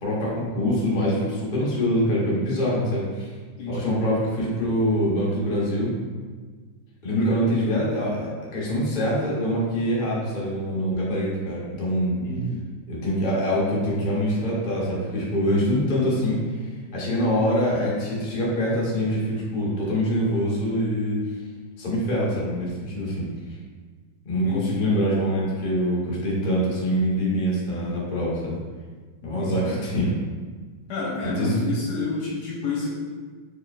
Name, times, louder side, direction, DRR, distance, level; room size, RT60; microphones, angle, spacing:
voice 1, 0.0-3.3 3.7-5.9 7.0-12.2 12.9-21.2 21.8-23.3 24.2-28.6 29.2-30.1 31.2-31.6, equal, 45° left, -6 dB, 0.7 m, -24 dB
voice 2, 3.6-3.9 12.2-12.6 24.4-24.9 29.2-29.8 30.9-32.9, left 3 dB, 65° left, -4 dB, 1.2 m, -29 dB
4.2 x 3.4 x 2.3 m, 1.5 s
omnidirectional pair, 2.1 m